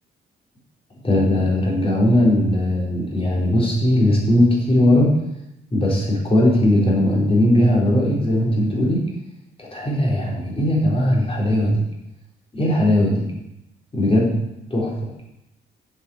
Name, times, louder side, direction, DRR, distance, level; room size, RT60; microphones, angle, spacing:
voice 1, 1.0-5.1 5.7-9.0 9.6-11.8 12.5-13.3 13.9-14.3 14.7-15.1, left 1 dB, 30° left, -4 dB, 4.6 m, -18 dB
8.8 x 7.3 x 7.3 m, 0.85 s
cardioid pair, 90°, 20 cm